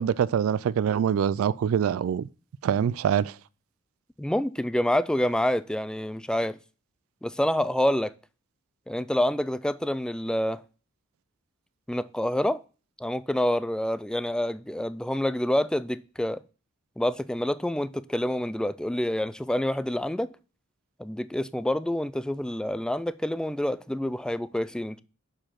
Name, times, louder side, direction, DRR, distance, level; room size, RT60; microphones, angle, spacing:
voice 1, 0.0-2.3 2.6-3.4, right 8 dB, 80° right, 0.3 m, -24 dB
voice 2, 4.2-6.6 7.2-8.1 8.9-10.6 11.9-12.6 13.0-16.4 17.0-20.3 21.0-25.0, left 1 dB, 5° left, 0.3 m, -27 dB
6.7 x 4.8 x 5.8 m
head